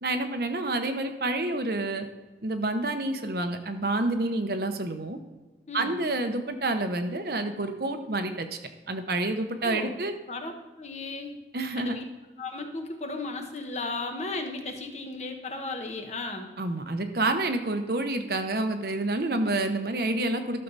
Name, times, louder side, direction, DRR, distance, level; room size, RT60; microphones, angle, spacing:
voice 1, 0.0-2.1 2.4-5.2 5.7-8.6 8.9-10.1 11.5-12.0 16.6-20.6, right 2 dB, 55° right, 7 dB, 0.9 m, -28 dB
voice 2, 5.7-6.0 9.6-9.9 10.3-10.5 10.8-11.4 11.8-12.0 12.4-16.5, left 2 dB, 40° left, 4 dB, 1.2 m, -35 dB
12.5 x 6.6 x 4.0 m, 1.2 s
head